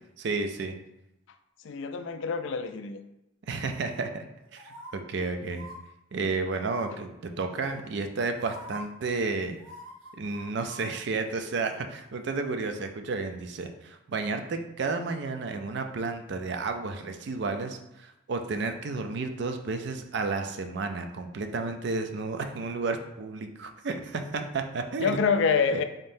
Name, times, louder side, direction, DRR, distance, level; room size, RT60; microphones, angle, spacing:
voice 1, 0.2-0.8 3.5-4.3 4.5-5.7 6.1-9.6 10.2-25.2 25.7-25.8, right 3 dB, 55° right, 6 dB, 0.4 m, -32 dB
voice 2, 1.6-3.0 25.0-25.8, left 5 dB, 65° left, 9 dB, 0.3 m, -26 dB
sound 1, 4.5-4.9 5.5-5.8 6.7-7.1 8.0-8.1 8.4-8.8 9.6-10.8 11.2-11.3, right 1 dB, 75° right, 0.8 m, -44 dB
3.8 x 3.6 x 2.6 m, 0.87 s
head